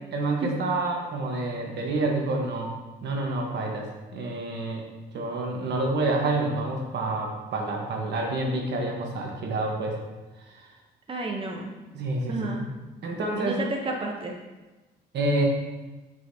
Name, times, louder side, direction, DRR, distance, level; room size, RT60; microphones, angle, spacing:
voice 1, 0.1-2.7 3.0-3.9 4.1-4.8 5.1-9.9 10.6-10.7 11.9-12.6 13.0-13.6 15.1-15.4, right 2 dB, 75° right, 0 dB, 1.3 m, -28 dB
voice 2, 11.1-11.7 12.3-12.6 13.4-14.4, right 3 dB, 30° right, 0 dB, 0.8 m, -31 dB
8.0 x 5.6 x 2.8 m, 1.2 s
cardioid pair, 115°, 18 cm